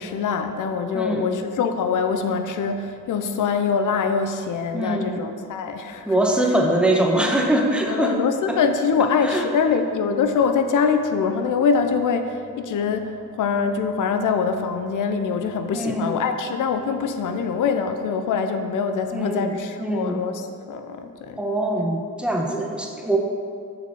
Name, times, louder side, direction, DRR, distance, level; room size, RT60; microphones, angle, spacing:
voice 1, 0.0-6.1 7.9-21.4, left 5 dB, 70° left, 7 dB, 0.7 m, -24 dB
voice 2, 0.9-1.4 4.7-5.2 6.0-8.2 8.5-8.6 9.2-9.5 15.7-16.2 19.1-19.5 19.8-20.2 21.4-23.2, right 1 dB, 5° right, 1 dB, 1.2 m, -23 dB
7.1 x 5.1 x 6.3 m, 2.4 s
cardioid pair, 75°, 32 cm